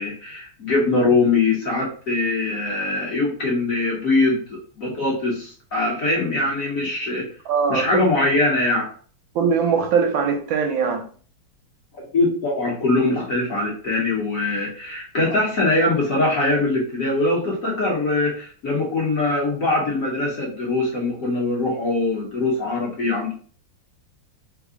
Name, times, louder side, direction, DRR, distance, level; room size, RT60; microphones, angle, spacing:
voice 1, 0.0-7.3 7.7-8.9 12.1-23.3, left 2 dB, 55° left, 1.1 m, -22 dB
voice 2, 7.5-8.0 9.3-11.1, right 6 dB, 80° right, 1.4 m, -21 dB
3.4 x 2.1 x 3.6 m
omnidirectional pair, 2.2 m